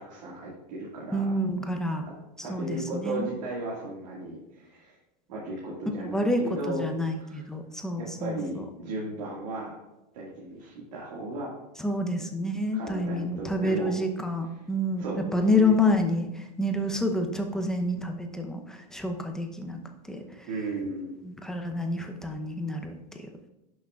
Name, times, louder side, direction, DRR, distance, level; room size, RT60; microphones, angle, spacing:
voice 1, 0.0-1.2 2.0-2.1 2.4-5.0 5.3-6.8 7.2-7.5 8.0-9.8 10.1-11.5 12.7-13.9 15.0-15.7 20.5-21.2, right 2 dB, 85° right, -4 dB, 2.0 m, -35 dB
voice 2, 1.1-2.0 2.4-3.2 6.0-8.7 11.8-15.0 15.3-19.8 20.1-20.5 21.2-23.3, left 1 dB, 5° left, 3 dB, 0.7 m, -28 dB
11.0 x 6.4 x 2.4 m, 0.94 s
supercardioid pair, 145°, 21 cm